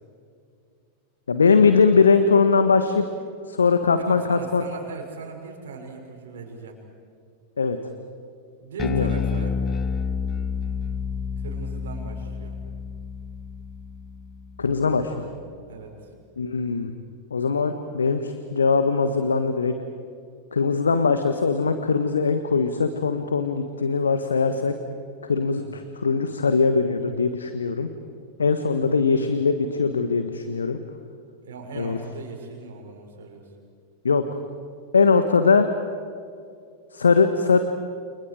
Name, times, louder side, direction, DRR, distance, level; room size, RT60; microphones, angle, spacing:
voice 1, 1.3-3.1 3.5-4.7 7.6-7.8 8.8-9.1 14.6-15.1 16.4-16.9 17.3-19.7 20.5-24.7 25.3-27.9 28.4-30.8 31.7-32.0 34.0-34.2 34.9-35.7 36.9-37.6, left 5 dB, 70° left, 9 dB, 1.4 m, -21 dB
voice 2, 4.1-6.8 8.6-9.6 11.4-12.6 15.7-16.1 25.5-25.7 28.8-29.1 31.4-33.5, right 5 dB, 60° right, 0 dB, 6.2 m, -39 dB
Bass guitar, 8.8-15.2, left 6 dB, 25° left, 1.3 m, -30 dB
30.0 x 29.5 x 5.0 m, 2.4 s
figure-of-eight pair, 90°, 0 cm